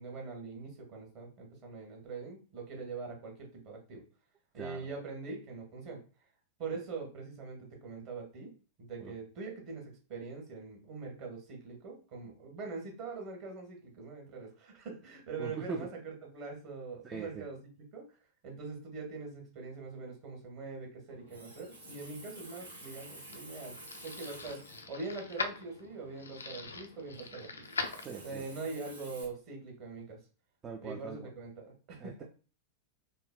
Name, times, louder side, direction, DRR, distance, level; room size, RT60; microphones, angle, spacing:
voice 1, 0.0-4.0 4.5-6.0 6.6-8.5 8.8-18.1 18.4-27.6 28.2-30.2 30.8-32.2, right 4 dB, 40° right, 0 dB, 1.2 m, -43 dB
voice 2, 15.4-15.9 17.0-17.4 28.0-28.5 30.6-31.3 32.0-32.2, right 5 dB, 25° right, 3 dB, 0.3 m, -41 dB
Water tap faucet, 21.1-29.2, right 1 dB, 80° right, 0.9 m, -52 dB
sound 1, 22.6-28.6, left 4 dB, 75° left, 0.3 m, -42 dB
3.7 x 2.0 x 2.2 m, 0.36 s
figure-of-eight pair, 90°, 0 cm